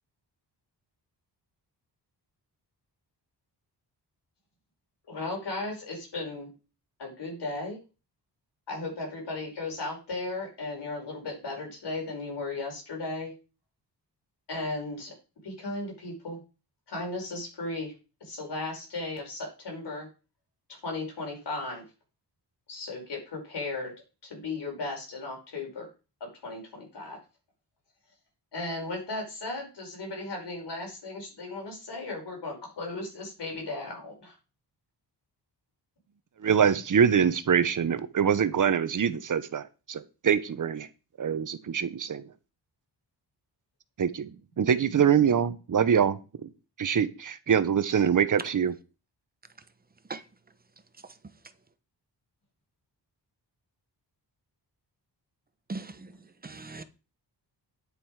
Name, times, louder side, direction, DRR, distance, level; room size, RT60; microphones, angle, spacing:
voice 1, 5.1-6.5 7.0-7.8 8.7-13.3 14.5-15.1 15.4-16.4 16.9-17.9 18.2-20.1 20.7-21.8 22.7-23.9 24.2-25.9 26.2-27.2 28.5-34.3, left 2 dB, 75° left, 5.3 m, -36 dB
voice 2, 36.4-40.9 41.2-42.3 44.0-44.3 44.6-46.5 46.8-48.7, right 7 dB, 50° right, 0.9 m, -24 dB
voice 3, 55.7-56.8, right 3 dB, 20° right, 0.9 m, -40 dB
10.0 x 7.5 x 4.9 m
wide cardioid pair, 175°, 42 cm